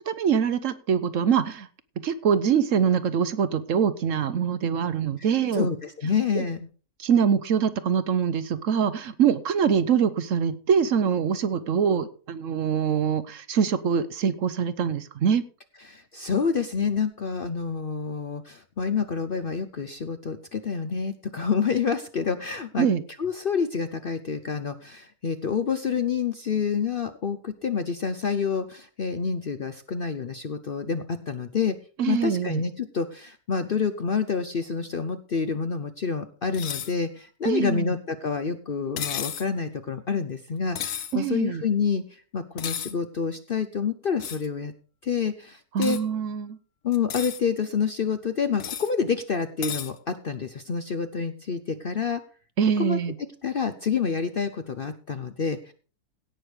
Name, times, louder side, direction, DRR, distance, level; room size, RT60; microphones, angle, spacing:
voice 1, 0.1-1.7 2.0-5.7 6.3-6.4 7.0-15.4 22.8-23.0 32.0-32.6 37.4-37.9 41.1-41.6 45.7-46.6 52.6-53.1, right 7 dB, 60° right, 14 dB, 1.0 m, -24 dB
voice 2, 5.5-6.6 15.8-22.9 23.2-31.8 32.1-44.7 45.0-46.0 46.8-52.2 52.8-53.0 53.4-55.7, left 6 dB, 50° left, 10 dB, 0.7 m, -28 dB
sound 1, 36.5-36.9 39.0-39.5 40.7-41.1 42.6-42.9 44.2-44.5 45.8-46.0 46.9-47.4 48.6-48.9 49.6-49.9, left 9 dB, 75° left, 1.4 m, -33 dB
17.0 x 6.3 x 5.0 m, 0.39 s
omnidirectional pair, 1.7 m